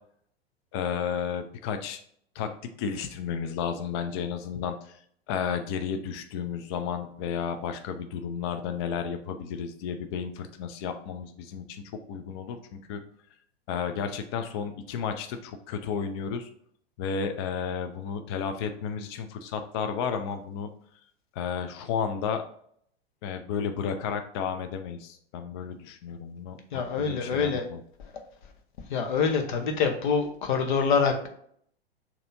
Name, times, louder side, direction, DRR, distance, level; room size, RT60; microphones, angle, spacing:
voice 1, 0.7-2.0 2.4-2.5 2.8-5.0 5.3-13.0 13.7-16.5 17.0-20.7 21.4-22.4 23.2-27.8, left 7 dB, 25° left, 8 dB, 0.4 m, -32 dB
voice 2, 26.7-27.7 28.0-28.1 28.9-31.3, left 5 dB, 50° left, 5 dB, 0.9 m, -25 dB
6.6 x 2.8 x 2.6 m, 0.64 s
figure-of-eight pair, 100°, 32 cm